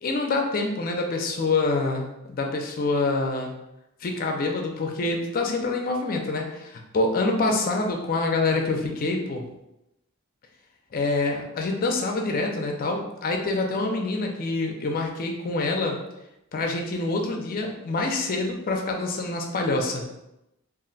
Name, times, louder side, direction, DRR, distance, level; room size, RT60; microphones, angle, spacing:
voice 1, 0.0-3.5 4.0-9.5 10.9-16.0 16.5-20.1, left 3 dB, 40° left, 2 dB, 0.4 m, -26 dB
2.4 x 2.1 x 3.8 m, 0.89 s
head